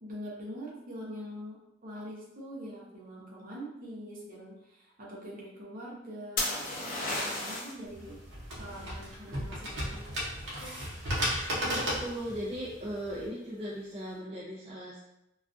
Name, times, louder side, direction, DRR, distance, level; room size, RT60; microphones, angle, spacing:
voice 1, 0.0-6.7 7.0-8.2 8.6-10.1, equal, 50° right, -5 dB, 0.7 m, -43 dB
sound 1, 6.4-7.8 11.5-11.9, left 2 dB, 50° left, 0.6 m, -33 dB
sound 2, 7.9-13.3, equal, 85° right, 0.8 m, -35 dB
voice 2, 11.6-15.0, equal, 30° right, -6 dB, 0.4 m, -38 dB
2.3 x 2.3 x 2.5 m, 0.86 s
head